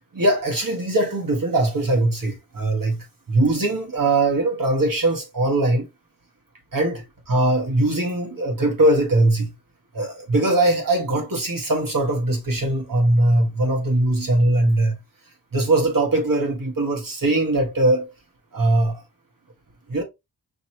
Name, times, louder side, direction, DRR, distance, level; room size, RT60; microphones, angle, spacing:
voice 1, 0.1-5.8 6.7-9.5 9.9-15.0 15.5-18.1 18.5-19.0 19.9-20.0, right 2 dB, 55° right, 1.7 m, -21 dB
5.3 x 3.1 x 2.8 m
wide cardioid pair, 75°, 40 cm